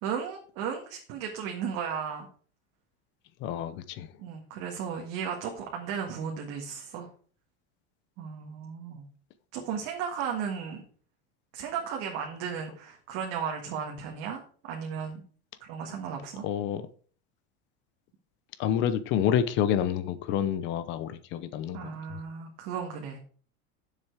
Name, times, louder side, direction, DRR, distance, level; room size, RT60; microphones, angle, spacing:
voice 1, 0.0-2.3 4.2-7.1 8.2-9.0 9.5-10.8 11.5-15.2 15.6-16.4 21.7-23.2, right 7 dB, 45° right, 1.8 m, -35 dB
voice 2, 3.4-4.1 16.4-16.8 18.6-21.9, left 9 dB, 35° left, 0.7 m, -28 dB
9.9 x 7.4 x 4.7 m
cardioid pair, 180°, 31 cm